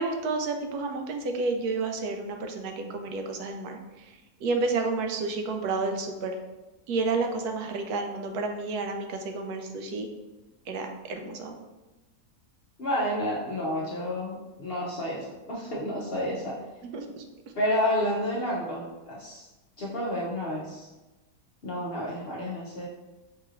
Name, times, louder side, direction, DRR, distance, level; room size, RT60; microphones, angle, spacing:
voice 1, 0.0-6.4 6.9-10.1 10.7-11.5 16.8-17.2, right 3 dB, 80° right, 4 dB, 1.1 m, -31 dB
voice 2, 12.8-16.6 17.5-19.4 19.8-20.9 21.6-22.9, left 1 dB, 50° left, -5 dB, 0.7 m, -30 dB
5.4 x 3.0 x 2.4 m, 1.1 s
omnidirectional pair, 1.7 m